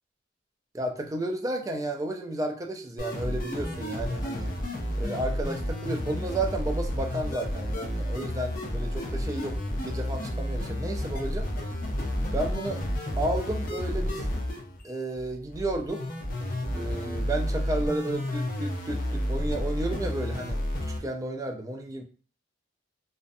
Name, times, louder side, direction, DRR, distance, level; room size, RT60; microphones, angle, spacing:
voice 1, 0.7-4.5 5.0-9.5 9.8-11.5 12.3-12.8 13.2-14.3 14.8-16.0 16.7-20.6 21.0-22.0, right 1 dB, 15° right, 2 dB, 0.3 m, -32 dB
sound 1, 3.0-21.0, left 1 dB, 45° left, 0.5 m, -31 dB
2.5 x 2.1 x 2.5 m, 0.39 s
head